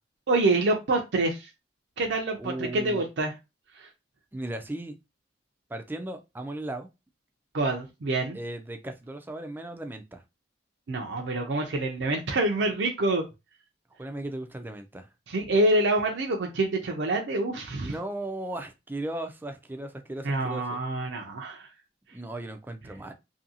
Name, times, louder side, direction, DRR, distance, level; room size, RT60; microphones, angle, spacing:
voice 1, 0.3-1.5 2.0-3.3 3.8-3.9 7.5-8.4 10.9-13.2 15.3-17.9 20.2-21.7, right 2 dB, 75° right, 0.5 m, -26 dB
voice 2, 2.4-3.1 4.3-5.0 5.7-6.9 8.3-10.2 14.0-15.1 17.8-20.8 22.1-23.1, right 1 dB, 10° right, 0.3 m, -36 dB
2.7 x 2.6 x 2.7 m
head